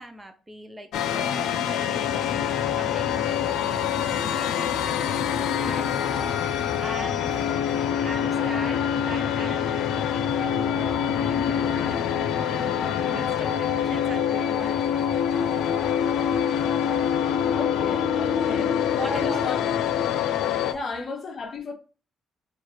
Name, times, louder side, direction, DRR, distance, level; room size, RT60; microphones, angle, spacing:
voice 1, 0.0-6.4 6.8-12.1 12.5-15.5 19.0-19.8, right 1 dB, 20° right, 0.5 m, -41 dB
sound 1, 0.9-20.7, left 8 dB, 80° left, 0.3 m, -25 dB
voice 2, 13.0-13.5 17.5-18.7 19.1-19.6 20.7-21.7, left 3 dB, 50° left, 0.8 m, -35 dB
3.1 x 2.4 x 4.3 m
cardioid pair, 90°, 0 cm